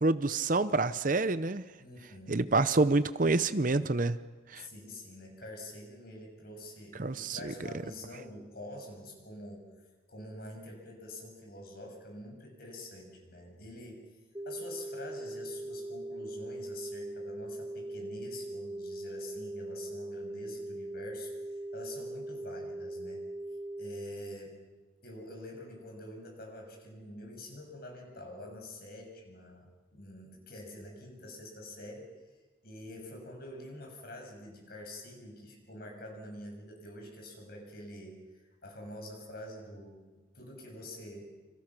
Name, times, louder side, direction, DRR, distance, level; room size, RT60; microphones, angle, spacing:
voice 1, 0.0-1.6 2.3-4.2 4.5-4.7 7.0-7.5, right 3 dB, 40° right, 13 dB, 0.7 m, -27 dB
voice 2, 1.8-2.5 4.6-9.7 10.1-14.0 14.5-23.3 23.7-24.6 25.0-32.1 32.6-40.0 40.3-41.3, left 1 dB, 50° left, 2 dB, 7.0 m, -46 dB
sound 1, 14.3-24.3, right 1 dB, 15° right, 2.1 m, -40 dB
28.5 x 27.5 x 6.1 m, 1.3 s
head